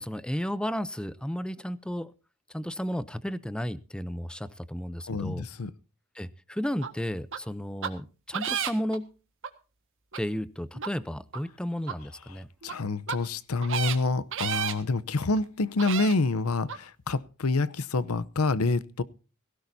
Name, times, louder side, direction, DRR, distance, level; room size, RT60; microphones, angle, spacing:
voice 1, 0.0-2.1 2.5-5.5 6.1-9.0 10.1-12.5, equal, 5° left, 0.6 m, -33 dB
voice 2, 5.1-5.7 12.6-19.0, left 3 dB, 90° left, 0.8 m, -27 dB
sound 1, 6.8-6.9 7.3-7.4 7.8-7.9 8.3-9.0 9.4-9.5 10.1-10.2 10.7-10.9 11.3-11.4 11.9-12.0 12.6-12.7 13.1-13.2 13.6-14.0 14.3-14.7 15.4-15.5 15.8-16.2 16.7-16.8, right 8 dB, 65° right, 1.6 m, -31 dB
18.0 x 16.5 x 2.7 m
head